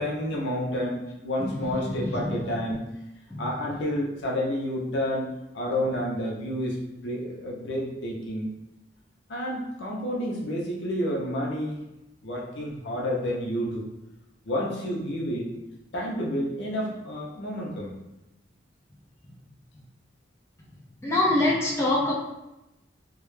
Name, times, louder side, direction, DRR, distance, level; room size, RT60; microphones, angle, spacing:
voice 1, 0.0-2.8 3.4-8.5 9.3-11.8 12.2-13.8 14.4-15.5 15.9-17.9, equal, 75° left, -3 dB, 0.6 m, -30 dB
voice 2, 1.4-2.4 3.4-3.5 21.0-22.1, left 1 dB, 15° left, -5 dB, 0.4 m, -25 dB
2.2 x 2.0 x 3.1 m, 0.93 s
head